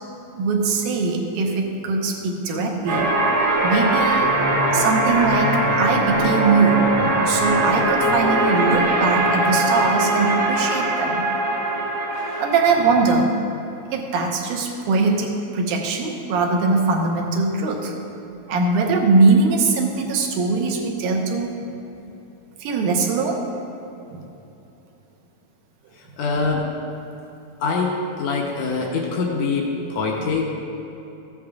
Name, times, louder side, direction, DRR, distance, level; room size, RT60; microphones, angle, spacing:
voice 1, 0.3-3.1 3.6-4.3 4.7-11.2 12.4-13.3 13.9-17.9 18.5-21.5 22.6-23.4 24.1-24.3, right 4 dB, 75° right, 1 dB, 2.1 m, -21 dB
sound 1, 2.9-13.1, right 1 dB, 50° right, 1.7 m, -21 dB
voice 2, 26.0-26.7 27.6-30.5, left 4 dB, 75° left, -1 dB, 1.6 m, -24 dB
14.5 x 8.4 x 2.4 m, 2.9 s
omnidirectional pair, 4.1 m